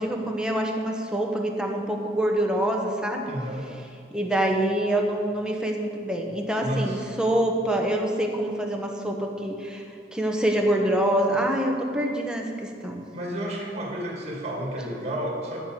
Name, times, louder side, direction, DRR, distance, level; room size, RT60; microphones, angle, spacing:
voice 1, 0.0-3.3 4.1-9.8 10.1-13.0, right 1 dB, 5° right, 0 dB, 1.2 m, -25 dB
voice 2, 3.3-3.7 6.6-7.0 13.1-15.6, equal, 35° right, -2 dB, 2.6 m, -31 dB
10.5 x 7.8 x 7.6 m, 2.4 s
head